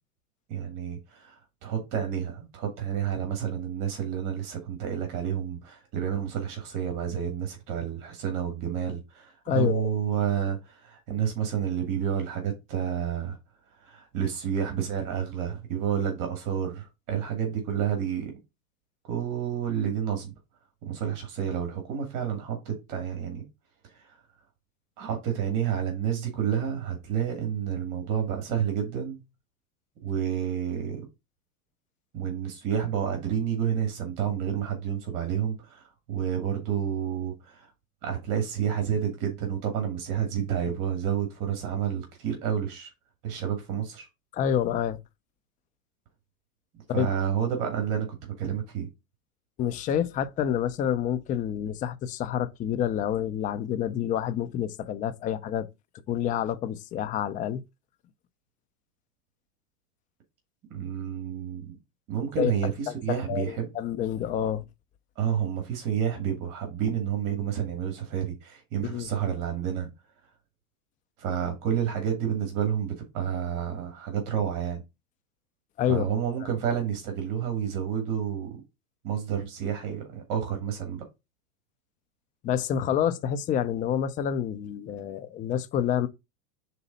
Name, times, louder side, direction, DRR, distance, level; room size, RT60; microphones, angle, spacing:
voice 1, 0.5-13.4 13.8-18.4 19.0-20.3 20.8-23.4 23.8-24.1 25.0-29.2 30.0-31.0 32.1-37.7 38.0-42.9 43.2-44.1 46.9-48.9 60.7-61.7 62.1-63.7 65.2-69.9 71.2-74.8 75.9-78.6 79.0-81.0, right 8 dB, 45° right, 2.4 m, -30 dB
voice 2, 9.5-9.9 44.3-45.0 46.9-47.1 49.6-55.7 56.1-57.6 62.4-62.5 62.9-64.6 68.8-69.1 75.8-76.1 82.4-86.1, left 9 dB, 20° left, 0.4 m, -28 dB
5.0 x 4.0 x 5.4 m
supercardioid pair, 125°, 45 cm